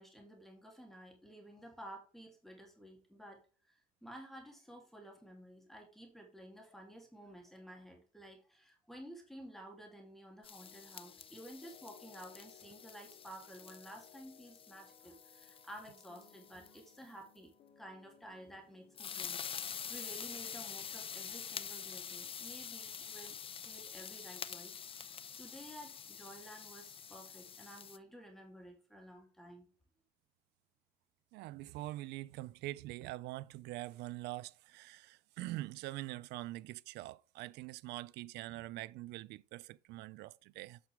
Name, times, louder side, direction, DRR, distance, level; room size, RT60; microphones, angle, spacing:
voice 1, 0.0-19.4 19.9-23.4 23.6-24.8 25.4-29.7, right 1 dB, ahead, 3.0 m, -53 dB
sound 1, 10.4-16.8 19.0-28.0, left 7 dB, 35° left, 0.6 m, -47 dB
sound 2, 10.5-21.3, left 8 dB, 60° left, 2.4 m, -64 dB
voice 2, 31.3-40.8, right 17 dB, 85° right, 0.4 m, -44 dB
8.8 x 6.1 x 3.5 m
cardioid pair, 110°, 17 cm